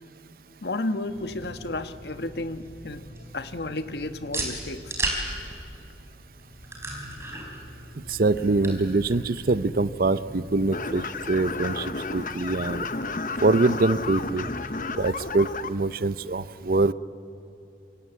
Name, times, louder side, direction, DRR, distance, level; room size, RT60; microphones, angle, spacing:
voice 1, 0.6-4.9, left 2 dB, 70° left, 10 dB, 1.2 m, -32 dB
sound 1, 1.0-15.3, right 1 dB, 15° right, 4.4 m, -38 dB
voice 2, 8.1-12.9 13.4-14.5 14.9-16.9, right 3 dB, 55° right, 16 dB, 0.6 m, -24 dB
sound 2, 10.7-15.7, left 3 dB, 45° left, 0.8 m, -32 dB
27.0 x 25.5 x 8.3 m, 2.7 s
head